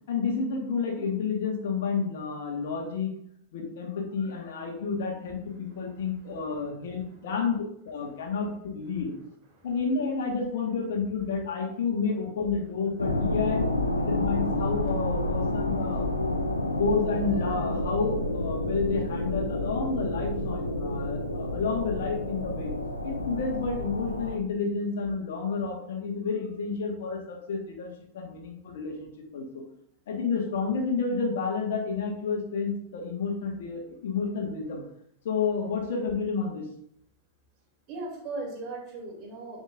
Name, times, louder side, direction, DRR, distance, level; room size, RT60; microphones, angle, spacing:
voice 1, 0.1-3.1 3.5-9.1 9.6-13.6 13.9-16.1 16.7-22.7 23.0-29.6 30.1-34.8 35.2-36.7, left 5 dB, 60° left, 1 dB, 1.6 m, -30 dB
voice 2, 5.5-6.7 7.0-7.2 8.1-8.3 9.5-9.8 16.4-16.8 37.9-39.6, right 2 dB, 40° right, -2 dB, 3.1 m, -40 dB
sound 1, 13.0-24.4, left 1 dB, 80° left, 0.7 m, -29 dB
9.7 x 5.4 x 2.6 m, 0.70 s
figure-of-eight pair, 90°, 0 cm